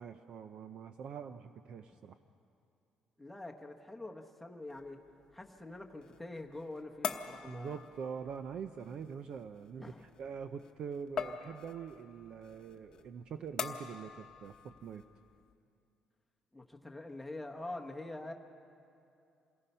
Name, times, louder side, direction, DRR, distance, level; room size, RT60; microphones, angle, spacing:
voice 1, 0.0-2.2 7.4-15.0, right 6 dB, 45° right, 9 dB, 0.5 m, -44 dB
voice 2, 3.2-5.0 5.3-7.8 9.8-10.1 16.5-18.3, left 2 dB, 5° left, 1 dB, 1.1 m, -45 dB
sound 1, 4.7-15.5, left 7 dB, 35° left, 0.9 m, -45 dB
27.5 x 18.5 x 5.5 m, 2.6 s
cardioid pair, 175°, 2 cm